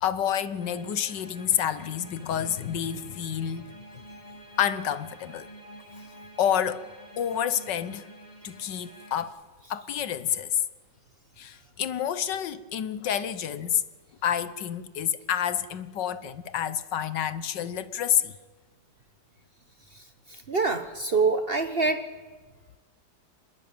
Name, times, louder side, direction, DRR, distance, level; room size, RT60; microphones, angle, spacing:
voice 1, 0.0-3.7 4.6-5.5 6.4-6.9 7.2-8.1 8.4-9.4 9.7-10.6 11.4-13.8 14.2-18.3, left 9 dB, 70° left, 1.6 m, -28 dB
sound 1, 0.6-9.2, equal, 25° left, 3.4 m, -49 dB
voice 2, 20.3-22.1, right 4 dB, 40° right, 1.0 m, -25 dB
25.5 x 21.0 x 8.8 m
omnidirectional pair, 2.0 m